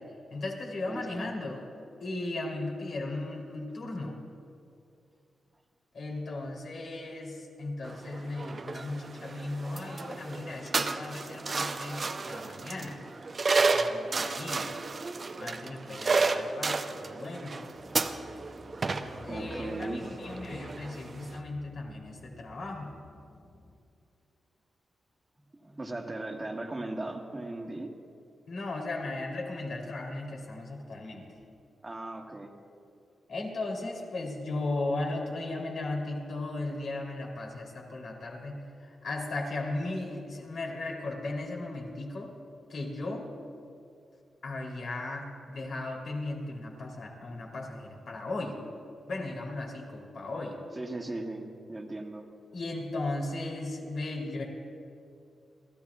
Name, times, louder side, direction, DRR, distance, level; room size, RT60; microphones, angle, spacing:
voice 1, 0.3-1.6 2.0-4.2 5.9-13.0 13.7-14.7 15.4-17.5 19.2-22.9 28.5-31.2 33.3-42.3 42.7-43.3 44.4-48.6 49.1-50.6 52.5-54.4, left 2 dB, 70° left, -1 dB, 3.2 m, -36 dB
voice 2, 0.9-1.3 19.3-20.1 25.6-27.9 31.8-32.6 50.7-52.3, right 2 dB, 25° right, 2 dB, 1.6 m, -37 dB
sound 1, 7.8-21.4, right 3 dB, 45° right, 0.7 m, -32 dB
sound 2, 17.7-23.8, left 4 dB, 45° left, 1.3 m, -52 dB
30.0 x 14.5 x 2.4 m, 2.5 s
cardioid pair, 75°, 0 cm